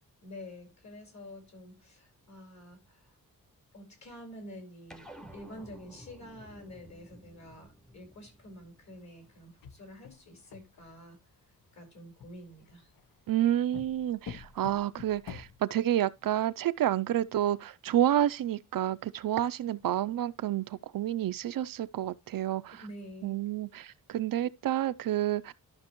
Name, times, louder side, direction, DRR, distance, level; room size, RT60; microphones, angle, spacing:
voice 1, 0.2-3.1 3.7-11.2 11.7-12.9 22.7-23.4, equal, 50° left, 4.3 m, -48 dB
sound 1, 4.9-9.6, right 1 dB, ahead, 0.7 m, -53 dB
sound 2, 9.5-11.1 12.2-13.0 13.7-15.6, left 7 dB, 75° left, 1.0 m, -46 dB
voice 2, 13.3-22.8 23.2-25.5, right 12 dB, 70° right, 0.5 m, -29 dB
12.5 x 5.9 x 3.0 m
wide cardioid pair, 160°, 35 cm